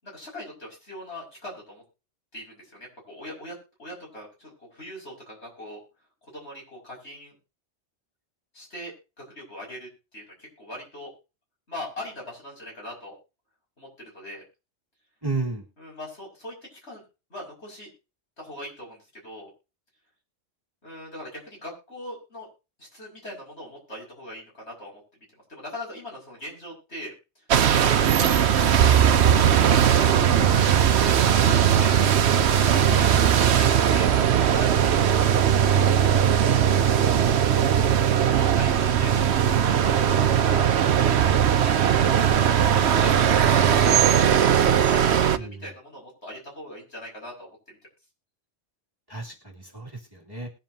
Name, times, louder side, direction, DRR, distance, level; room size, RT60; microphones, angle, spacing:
voice 1, 0.0-1.8 2.3-5.8 6.2-7.3 8.5-11.1 11.7-13.2 13.8-14.4 15.8-17.0 17.3-17.9 18.4-19.5 20.8-22.5 22.8-25.0 25.5-27.1 27.6-31.9 32.5-34.1 34.4-35.8 36.7-37.9 38.3-40.7 41.5-47.8, left 1 dB, 70° left, -2 dB, 6.3 m, -41 dB
voice 2, 15.2-15.6 32.9-33.3 45.4-45.5 49.1-50.5, right 3 dB, 20° right, -1 dB, 2.4 m, -33 dB
sound 1, 27.5-45.4, right 9 dB, 70° right, 1.0 m, -19 dB
21.0 x 7.4 x 2.8 m, 0.30 s
omnidirectional pair, 1.2 m